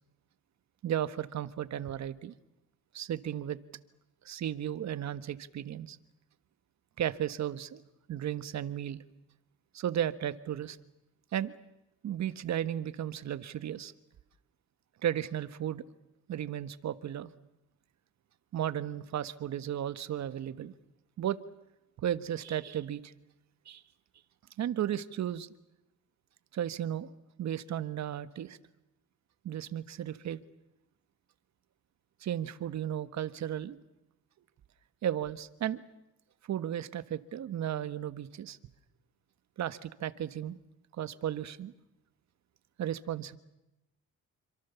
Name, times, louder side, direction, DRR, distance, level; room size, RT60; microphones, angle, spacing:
voice 1, 0.8-2.3 2.9-3.6 4.2-6.0 7.0-7.8 8.1-9.0 9.7-10.8 11.3-11.5 12.0-13.9 15.0-15.8 16.3-17.3 18.5-20.7 21.2-21.4 22.0-23.1 23.7-23.8 24.6-25.5 26.5-27.1 27.4-28.6 29.4-30.4 32.2-33.8 35.0-35.8 36.5-38.6 39.6-40.6 41.0-41.7 42.8-43.4, right 10 dB, 65° right, 13 dB, 1.5 m, -34 dB
28.0 x 25.5 x 7.1 m, 0.92 s
cardioid pair, 90°, 30 cm